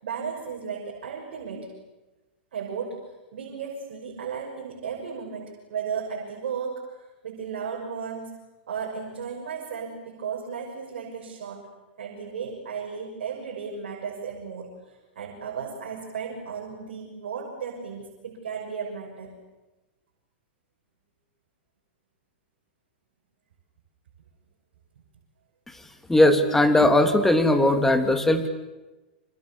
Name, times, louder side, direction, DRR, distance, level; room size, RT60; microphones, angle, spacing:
voice 1, 0.0-1.7 2.5-3.0 3.3-7.0 7.2-8.3 8.7-11.6 12.0-19.4, right 6 dB, 80° right, -1 dB, 6.4 m, -35 dB
voice 2, 26.1-28.5, left 1 dB, 5° left, 7 dB, 2.9 m, -19 dB
29.5 x 26.5 x 7.3 m, 1.1 s
hypercardioid pair, 135°, 6 cm